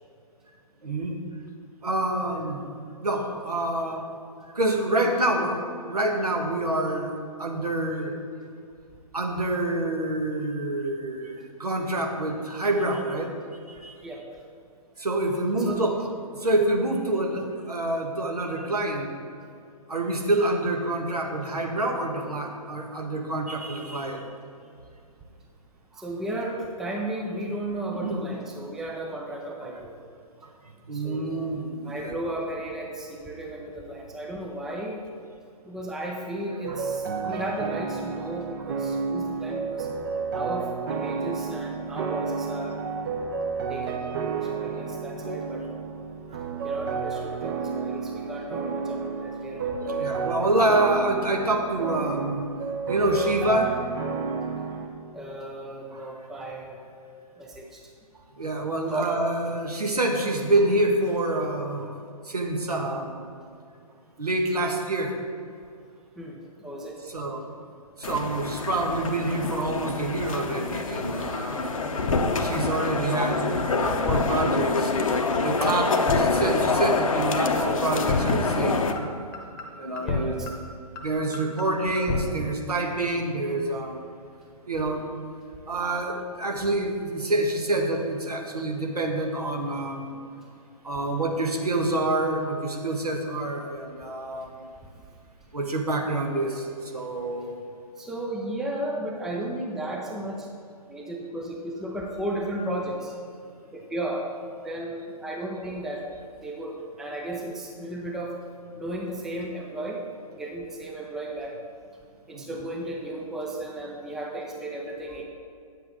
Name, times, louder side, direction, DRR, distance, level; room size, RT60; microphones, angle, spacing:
voice 1, 0.8-1.2 1.8-2.6 3.0-4.0 4.5-7.1 7.4-8.1 9.1-13.3 13.7-13.9 15.0-19.1 19.9-24.2 28.0-28.4 29.6-29.7 30.9-32.2 34.7-34.8 36.7-36.9 37.2-37.5 48.6-48.9 49.9-52.5 52.9-53.8 55.9-56.0 58.4-61.9 62.2-63.3 64.2-65.2 67.0-67.5 68.0-71.7 72.4-74.9 75.4-78.8 79.8-80.6 81.0-84.0 84.7-85.0 85.7-90.2 90.8-94.7 95.5-97.6 112.3-112.6 114.6-114.8, right 2 dB, 75° right, 2 dB, 1.4 m, -27 dB
voice 2, 26.0-29.9 30.9-31.5 31.8-35.0 35.6-39.9 40.3-42.8 43.7-44.0 44.4-45.7 46.6-50.3 55.1-56.8 57.4-57.8 58.9-59.1 66.2-67.0 72.3-72.6 80.0-80.5 81.8-82.0 98.0-100.5 100.9-103.1 103.7-104.3 104.6-106.0 106.4-108.4 108.8-110.0 110.4-111.6 112.3-115.2, right 1 dB, ahead, 0 dB, 0.4 m, -34 dB
sound 1, 36.6-54.9, right 5 dB, 35° right, 0.8 m, -31 dB
sound 2, 68.0-78.9, left 3 dB, 60° left, 0.8 m, -26 dB
sound 3, 71.0-71.1 71.3-71.6 72.0-72.2 72.5-72.6 73.0-73.1 73.3-73.6 74.0-74.2 74.5-74.6 75.0-75.1 75.3-75.6 76.0-76.2 76.5-76.6 77.0-77.1 77.3-77.6 78.0-78.2 78.5-78.6 79.0-79.1 79.3-79.6 80.0-80.2 80.5-80.6 81.0-81.1 81.3-81.6 82.0-82.2, left 4 dB, 30° left, 1.0 m, -29 dB
9.5 x 7.6 x 3.8 m, 2.4 s
figure-of-eight pair, 125°, 20 cm